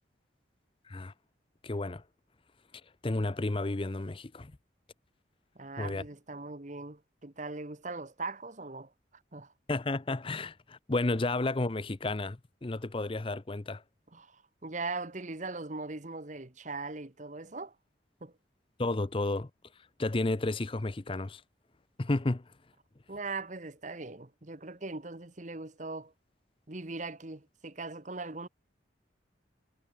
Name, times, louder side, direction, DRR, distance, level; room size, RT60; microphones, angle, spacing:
voice 1, 1.6-2.0 3.0-4.5 5.8-6.0 9.7-13.8 18.8-19.5 20.0-21.4 22.0-22.4, left 2 dB, 30° left, 0.6 m, -32 dB
voice 2, 5.5-8.9 9.3-9.5 14.1-17.7 18.2-18.3 23.1-26.1 26.7-28.5, right 3 dB, 40° right, 1.3 m, -40 dB
head